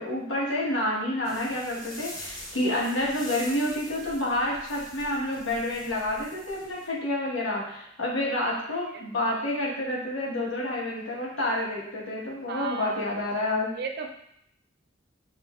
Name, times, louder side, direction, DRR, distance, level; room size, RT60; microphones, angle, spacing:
voice 1, 0.0-13.8, left 1 dB, 85° left, -3 dB, 1.1 m, -29 dB
sound 1, 1.2-6.9, equal, 20° left, 0.7 m, -44 dB
voice 2, 12.5-12.9 13.8-14.1, right 5 dB, 55° right, 4 dB, 0.4 m, -34 dB
6.6 x 2.5 x 2.3 m, 0.74 s
head